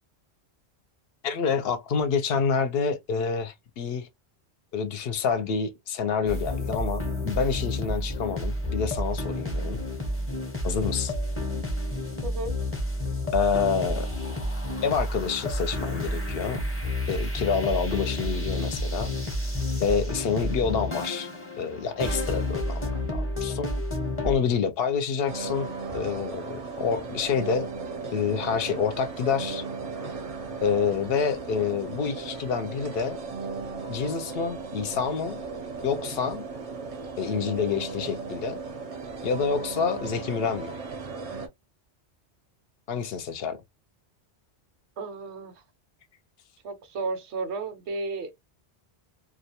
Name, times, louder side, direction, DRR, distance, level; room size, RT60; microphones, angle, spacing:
voice 1, 1.2-4.1 4.7-9.8 10.6-11.1 13.3-14.1 14.8-16.7 17.1-19.1 19.8-21.3 21.6-23.7 24.2-27.7 28.1-29.6 30.6-33.2 33.9-35.4 35.8-36.4 37.2-38.6 39.2-40.8 42.9-43.6, left 6 dB, 70° left, 0.7 m, -28 dB
sound 1, 6.3-24.3, left 1 dB, 15° left, 0.6 m, -30 dB
voice 2, 12.2-12.5 45.0-45.6 46.6-48.3, right 3 dB, 80° right, 1.0 m, -33 dB
sound 2, 25.3-41.5, right 4 dB, 45° right, 0.5 m, -36 dB
2.3 x 2.2 x 2.8 m
omnidirectional pair, 1.1 m